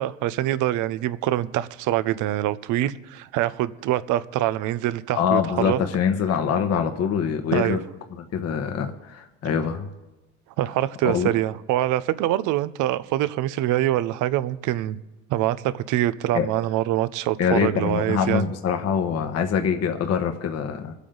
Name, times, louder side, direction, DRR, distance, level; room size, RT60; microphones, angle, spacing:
voice 1, 0.0-5.8 7.5-7.8 10.6-15.0 15.3-18.4, right 14 dB, 65° right, 0.8 m, -24 dB
voice 2, 5.2-7.8 8.1-9.9 11.1-11.3 16.3-16.5 17.4-20.9, left 7 dB, 50° left, 1.3 m, -24 dB
24.0 x 8.3 x 4.0 m
supercardioid pair, 85°, 33 cm